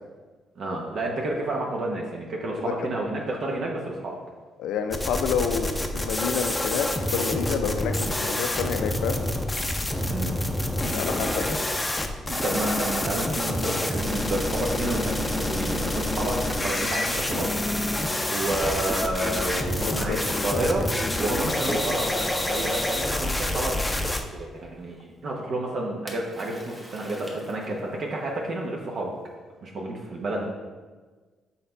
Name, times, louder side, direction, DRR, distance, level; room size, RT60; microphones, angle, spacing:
voice 1, 0.6-4.2 10.1-10.4 12.3-17.5 18.3-20.8 21.2-23.8 24.3-29.1 29.6-30.5, right 2 dB, 60° right, -1 dB, 0.9 m, -30 dB
voice 2, 4.6-9.2 10.9-11.6 19.7-20.7, left 6 dB, 90° left, 7 dB, 0.5 m, -29 dB
sound 1, 4.9-24.2, left 1 dB, 15° left, 0.6 m, -27 dB
Splash splatter, 21.6-24.3 26.1-28.0, right 1 dB, 10° right, 1.1 m, -39 dB
5.8 x 4.1 x 4.4 m, 1.4 s
cardioid pair, 90°, 0 cm